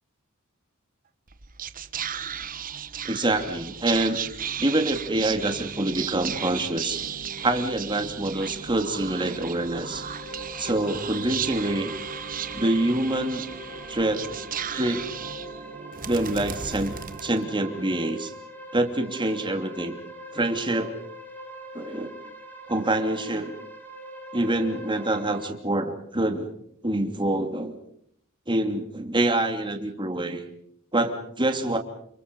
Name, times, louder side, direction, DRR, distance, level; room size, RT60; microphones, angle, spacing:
Whispering, 1.3-17.9, right 7 dB, 40° right, 1.2 m, -35 dB
voice 1, 3.0-4.2 4.6-7.0 7.4-10.0 10.6-11.9 12.5-13.4 13.9-14.2 14.7-15.0 16.0-16.9 17.2-18.3 18.7-20.0 20.3-20.9 21.7-22.1 22.7-23.5 24.3-26.5 26.8-27.8 28.5-30.4 30.9-31.8, right 1 dB, 20° right, 5 dB, 2.8 m, -26 dB
sound 1, 9.1-25.5, right 1 dB, 10° left, 4.9 m, -43 dB
29.0 x 26.5 x 5.5 m, 0.70 s
head